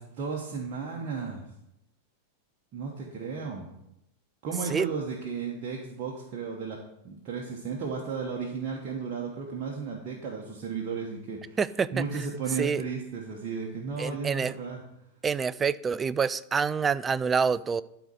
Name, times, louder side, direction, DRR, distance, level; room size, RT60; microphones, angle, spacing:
voice 1, 0.0-1.4 2.7-3.7 4.4-6.8 7.0-11.6 11.9-14.8, right 5 dB, 40° right, 1.3 m, -34 dB
voice 2, 11.6-11.9 12.1-12.2 12.6-12.8 14.0-14.5 15.2-17.8, right 6 dB, 20° right, 0.3 m, -27 dB
12.0 x 4.1 x 4.9 m
figure-of-eight pair, 90°, 0 cm